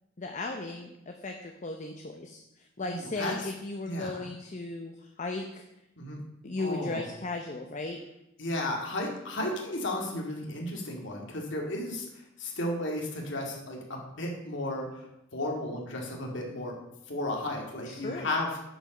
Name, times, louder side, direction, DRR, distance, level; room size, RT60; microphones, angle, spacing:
voice 1, 0.2-5.6 6.4-8.0 17.9-18.3, left 2 dB, 35° left, 4 dB, 0.7 m, -36 dB
voice 2, 2.8-3.5 3.9-4.2 6.0-6.2 6.6-7.0 8.4-16.7 17.1-18.5, left 1 dB, 60° left, 0 dB, 2.1 m, -34 dB
8.7 x 5.4 x 6.5 m, 0.87 s
head